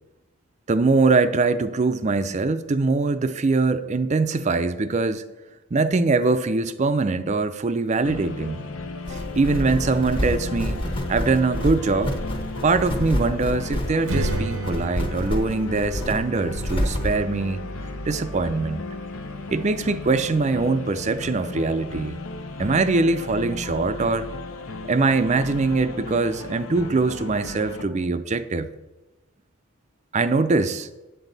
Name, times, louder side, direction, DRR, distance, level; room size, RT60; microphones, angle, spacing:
voice 1, 0.7-5.2 5.7-8.6 9.1-10.8 11.1-12.2 12.6-17.6 18.1-18.8 19.5-22.2 22.6-24.3 24.9-28.7 30.1-30.9, right 3 dB, 35° right, 0.4 m, -22 dB
sound 1, 8.0-27.9, left 3 dB, 75° left, 0.7 m, -35 dB
sound 2, 9.0-17.2, equal, 25° left, 1.0 m, -28 dB
Strum, 14.1-19.3, right 1 dB, 80° right, 0.7 m, -35 dB
9.0 x 8.2 x 4.0 m
head